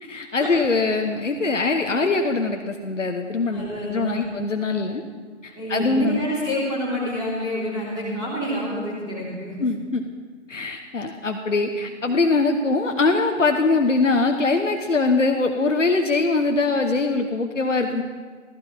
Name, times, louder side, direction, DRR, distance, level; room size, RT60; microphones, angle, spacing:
voice 1, 0.0-5.0 5.4-6.2 9.6-10.0 10.5-18.0, left 3 dB, 80° left, 5 dB, 1.2 m, -22 dB
voice 2, 3.5-4.3 5.5-9.5, equal, 10° right, -6 dB, 3.2 m, -28 dB
15.5 x 14.5 x 4.3 m, 1.5 s
figure-of-eight pair, 135°, 37 cm